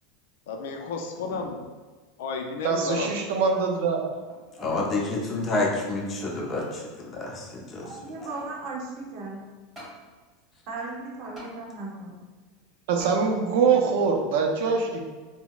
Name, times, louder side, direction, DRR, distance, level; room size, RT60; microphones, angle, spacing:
voice 1, 0.5-1.6 2.2-3.4 3.8-3.9, left 4 dB, 80° left, 3 dB, 0.4 m, -33 dB
voice 2, 2.6-4.0 12.9-15.1, right 5 dB, 75° right, 2 dB, 0.5 m, -23 dB
sound 1, 4.3-4.9 5.4-5.5 6.2-6.8 7.8-8.6 9.8-10.0 11.4-11.5 13.0-13.2 13.8-13.9, equal, 5° right, 1.3 m, -45 dB
voice 3, 4.6-7.9, left 2 dB, 25° left, -2 dB, 0.6 m, -29 dB
voice 4, 7.8-9.4 10.7-12.2, right 3 dB, 50° right, -2 dB, 0.8 m, -36 dB
3.9 x 2.0 x 2.3 m, 1.3 s
supercardioid pair, 135°, 0 cm